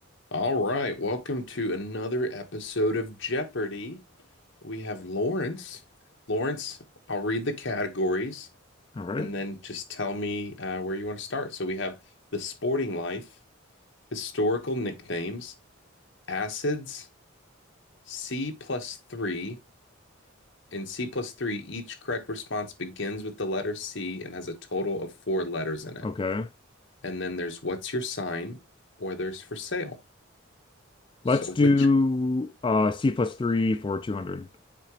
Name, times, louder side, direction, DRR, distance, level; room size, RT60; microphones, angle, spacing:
voice 1, 0.3-4.0 4.6-5.8 6.3-6.8 7.1-8.5 9.2-12.0 12.3-13.3 14.1-15.5 16.3-17.1 18.1-19.6 20.7-26.1 27.0-28.6 29.0-30.0 31.3-31.9, left 2 dB, 60° left, 1.4 m, -31 dB
voice 2, 9.0-9.3 26.0-26.5 31.2-34.5, left 3 dB, 25° left, 0.3 m, -24 dB
7.5 x 5.0 x 3.1 m
head